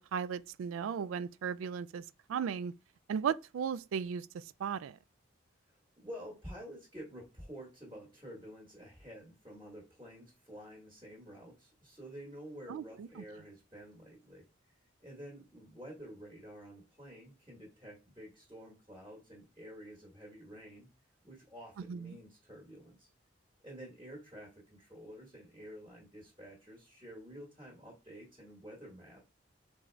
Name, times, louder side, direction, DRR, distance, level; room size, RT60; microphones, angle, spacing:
voice 1, 0.0-2.7 3.1-5.0 12.7-13.2 21.9-22.2, right 7 dB, 90° right, 0.3 m, -36 dB
voice 2, 6.0-14.5 15.0-20.9 21.2-23.1 23.6-29.2, equal, 20° right, 1.3 m, -50 dB
3.9 x 3.5 x 3.2 m
head